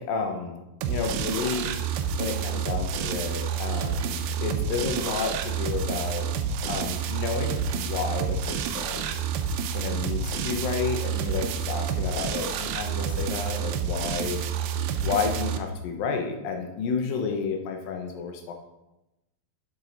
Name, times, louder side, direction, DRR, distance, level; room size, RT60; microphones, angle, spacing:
voice 1, 0.0-1.7 2.2-6.3 6.7-9.2 9.7-14.4 15.0-18.5, left 5 dB, 75° left, 4 dB, 2.6 m, -31 dB
sound 1, 0.8-15.6, right 7 dB, 85° right, 2.5 m, -29 dB
11.0 x 5.9 x 4.0 m, 0.97 s
omnidirectional pair, 4.2 m